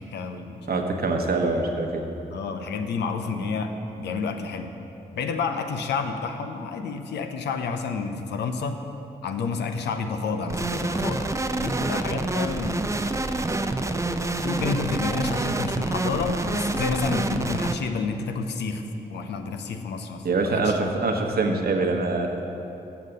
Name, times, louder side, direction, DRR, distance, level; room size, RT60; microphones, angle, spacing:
voice 1, 0.0-0.8 2.3-4.8 5.1-8.8 9.2-12.9 13.8-20.7, left 4 dB, 80° left, 6 dB, 0.7 m, -30 dB
voice 2, 0.7-2.0 20.2-22.4, right 3 dB, 60° right, 3 dB, 1.1 m, -24 dB
sound 1, 10.5-17.7, right 2 dB, 15° right, 0.6 m, -27 dB
7.2 x 6.6 x 7.7 m, 3.0 s
supercardioid pair, 45°, 18 cm